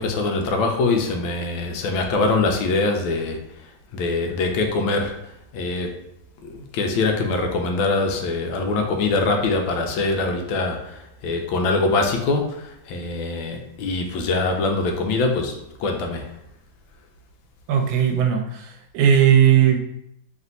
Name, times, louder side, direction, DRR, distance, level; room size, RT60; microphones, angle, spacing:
voice 1, 0.0-6.0 6.4-16.4, left 3 dB, 85° left, 4 dB, 1.4 m, -23 dB
voice 2, 17.7-19.8, right 9 dB, 75° right, 4 dB, 1.2 m, -17 dB
3.3 x 3.0 x 3.9 m, 0.79 s
omnidirectional pair, 2.2 m